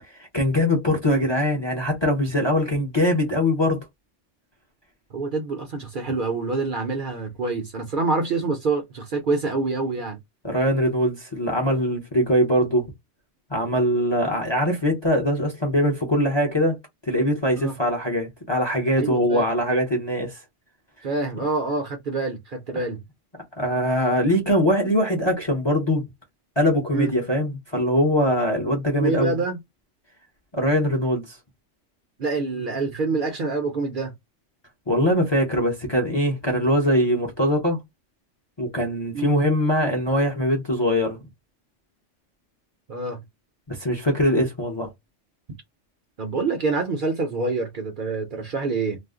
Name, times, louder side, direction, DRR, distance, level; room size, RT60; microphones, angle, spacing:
voice 1, 0.1-3.8 10.4-12.9 13.5-16.8 17.0-20.4 23.6-26.0 26.6-29.4 30.5-31.4 34.9-37.8 38.6-41.2 43.7-44.9, equal, 30° left, 0.6 m, -22 dB
voice 2, 5.1-10.2 17.6-17.7 19.0-19.4 21.0-23.0 26.9-27.1 29.0-29.6 32.2-34.1 39.1-39.3 42.9-43.2 46.2-49.0, right 3 dB, 50° right, 0.7 m, -26 dB
2.4 x 2.0 x 3.5 m
omnidirectional pair, 1.2 m